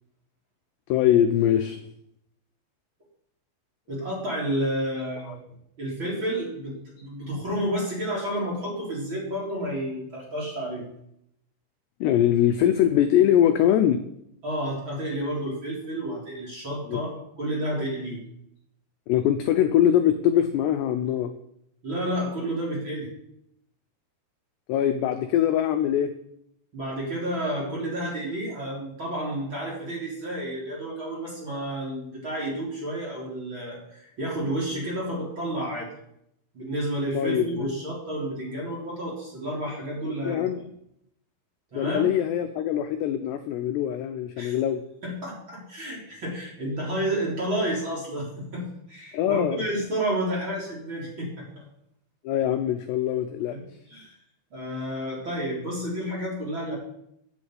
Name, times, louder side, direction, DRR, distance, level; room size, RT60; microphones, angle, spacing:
voice 1, 0.9-1.8 12.0-14.0 16.9-17.0 19.1-21.3 24.7-26.1 37.2-37.7 40.3-40.6 41.7-44.8 49.1-49.6 52.2-53.6, left 10 dB, 85° left, 7 dB, 2.4 m, -22 dB
voice 2, 3.9-5.4 5.8-10.9 14.4-18.2 21.8-23.1 26.7-35.9 36.5-40.4 41.7-42.1 44.4-44.6 45.0-51.6 53.5-53.6 53.9-54.1 54.5-56.7, right 1 dB, 25° right, -4 dB, 4.0 m, -30 dB
10.5 x 8.6 x 8.3 m, 0.76 s
omnidirectional pair, 5.8 m